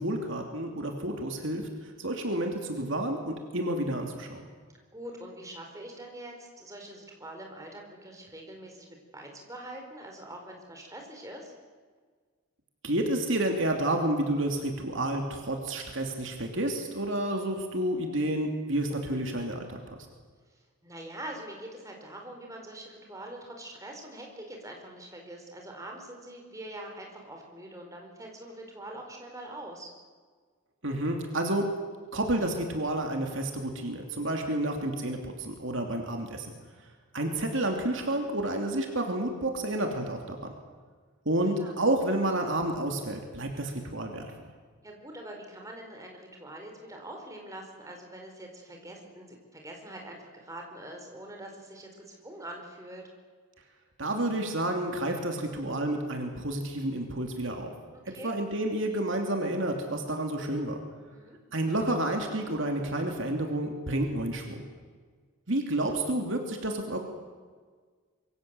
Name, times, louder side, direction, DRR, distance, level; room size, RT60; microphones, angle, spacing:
voice 1, 0.0-4.5 12.8-20.0 30.8-31.7 32.1-36.5 37.1-40.5 41.2-44.3 54.0-57.7 58.2-60.8 61.5-64.6 65.5-67.0, right 1 dB, 55° right, 3 dB, 2.9 m, -30 dB
voice 2, 4.9-11.5 20.5-29.9 38.2-38.3 41.6-41.7 44.8-53.0 58.1-58.3 61.1-61.4, right 1 dB, 15° right, 1 dB, 4.7 m, -44 dB
26.0 x 23.5 x 7.9 m, 1.6 s
head